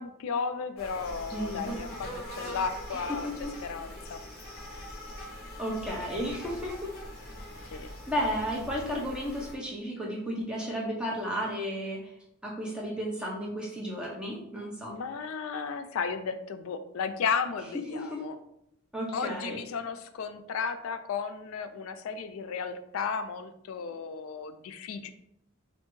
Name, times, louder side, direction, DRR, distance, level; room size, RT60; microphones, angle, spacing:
voice 1, 0.0-3.3 3.6-4.2 7.7-7.9 14.9-18.4 19.1-25.1, left 5 dB, 75° left, 10 dB, 0.3 m, -34 dB
sound 1, 0.8-9.6, left 1 dB, 45° left, 0.8 m, -42 dB
voice 2, 1.3-1.6 2.9-3.5 5.6-6.9 7.6-12.1 12.4-15.0 17.7-18.2 18.9-19.6, equal, 5° right, -3 dB, 0.6 m, -33 dB
3.3 x 2.5 x 3.1 m, 0.78 s
head